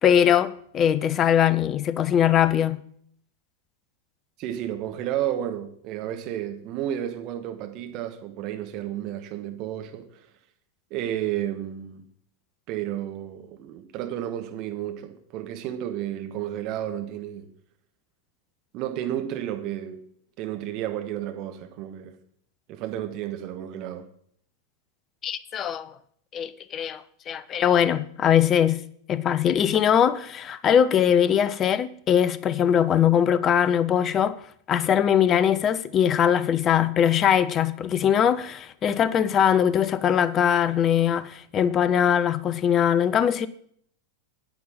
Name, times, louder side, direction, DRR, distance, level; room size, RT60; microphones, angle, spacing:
voice 1, 0.0-2.8 25.2-25.9 26.3-28.8 29.1-34.4 34.7-43.5, left 9 dB, 30° left, 0.6 m, -21 dB
voice 2, 4.4-10.3 10.9-12.0 12.7-17.5 18.7-20.0 20.4-22.2 22.7-24.1, right 11 dB, 40° right, 1.3 m, -32 dB
9.2 x 8.6 x 5.7 m
figure-of-eight pair, 90°, 0 cm